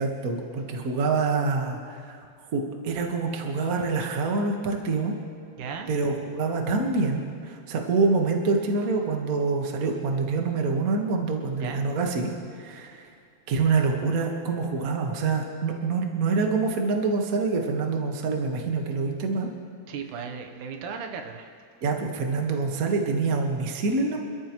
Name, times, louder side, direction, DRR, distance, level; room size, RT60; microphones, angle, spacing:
voice 1, 0.0-2.2 2.5-5.1 5.9-12.3 12.6-13.0 13.5-19.5 21.8-24.2, right 4 dB, 45° right, 2 dB, 1.3 m, -26 dB
voice 2, 5.6-5.9 11.6-11.8 19.9-21.5, right 6 dB, 85° right, 5 dB, 2.5 m, -36 dB
27.0 x 13.5 x 3.1 m, 2.2 s
omnidirectional pair, 3.4 m